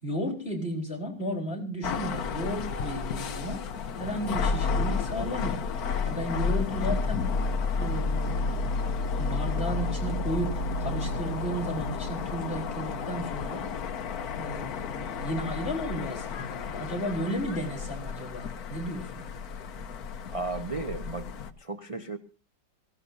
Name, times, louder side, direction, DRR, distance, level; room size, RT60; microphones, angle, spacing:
voice 1, 0.0-3.6 3.9-5.6 6.0-7.2 7.8-8.7 9.2-13.6 14.4-19.2, equal, 30° left, -3 dB, 4.4 m, -34 dB
sound 1, 1.8-21.5, left 4 dB, 55° left, 1.3 m, -31 dB
voice 2, 20.3-21.3 21.6-22.2, right 3 dB, 40° right, 4 dB, 0.5 m, -34 dB
22.5 x 16.5 x 2.7 m, 0.34 s
omnidirectional pair, 2.1 m